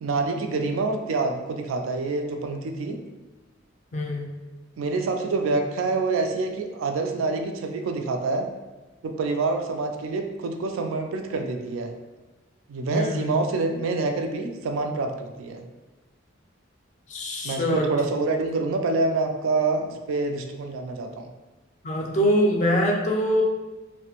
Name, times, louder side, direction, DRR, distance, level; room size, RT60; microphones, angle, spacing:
voice 1, 0.0-3.0 4.8-8.5 9.0-11.9 12.7-15.7 17.4-21.3, right 3 dB, 85° right, 5 dB, 0.3 m, -26 dB
voice 2, 3.9-4.3 12.9-13.5 17.1-17.9 21.8-23.4, equal, 35° left, 0 dB, 0.3 m, -24 dB
2.4 x 2.1 x 2.8 m, 1.1 s
head